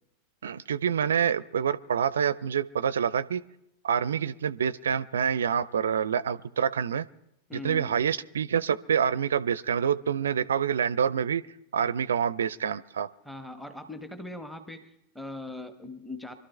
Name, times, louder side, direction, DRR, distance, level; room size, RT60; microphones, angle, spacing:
voice 1, 0.4-3.4 3.8-7.0 7.5-11.4 11.7-13.1, right 8 dB, 65° right, 20 dB, 0.4 m, -27 dB
voice 2, 7.5-8.0 13.2-16.3, left 2 dB, 5° left, 8 dB, 1.1 m, -40 dB
25.5 x 12.5 x 3.4 m, 0.82 s
figure-of-eight pair, 90°, 0 cm